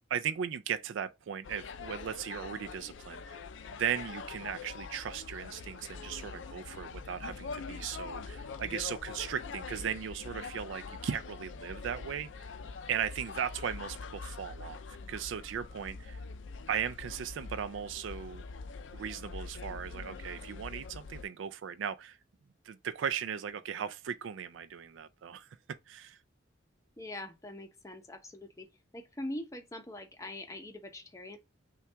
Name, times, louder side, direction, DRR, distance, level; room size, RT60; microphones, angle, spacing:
voice 1, 0.1-3.4 3.7-12.5 12.9-14.8 15.1-16.2 16.7-18.4 18.9-22.2 22.6-26.2, right 8 dB, 80° right, 0.4 m, -37 dB
sound 1, 1.4-21.2, left 4 dB, 75° left, 0.4 m, -44 dB
voice 2, 27.0-28.7 28.9-31.4, left 1 dB, 15° left, 0.7 m, -43 dB
5.7 x 2.3 x 3.3 m
head